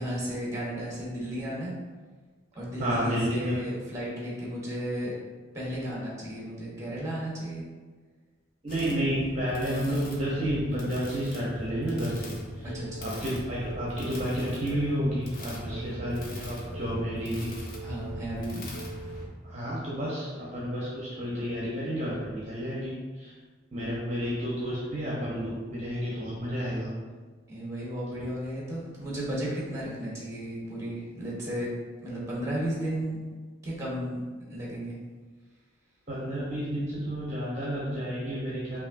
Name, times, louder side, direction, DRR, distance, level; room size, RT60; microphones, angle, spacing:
voice 1, 0.0-1.7 2.5-5.1 5.5-7.6 12.6-13.1 15.5-15.8 17.8-18.7 27.5-31.7 32.0-33.2 33.6-35.0, equal, 15° right, -5 dB, 1.0 m, -34 dB
voice 2, 2.8-3.6 8.6-12.7 13.0-17.5 18.5-18.7 19.4-23.3 23.7-26.9 36.1-38.8, equal, 35° right, -7 dB, 0.7 m, -31 dB
sound 1, 8.7-19.3, left 1 dB, 45° left, 0.6 m, -40 dB
Telephone, 11.7-12.2 12.7-13.2 13.7-14.2 14.7-15.2 15.7-16.2 16.7-17.2 17.7-18.2 18.7-19.3, right 4 dB, 80° right, 0.3 m, -43 dB
5.0 x 2.7 x 2.6 m, 1.4 s
head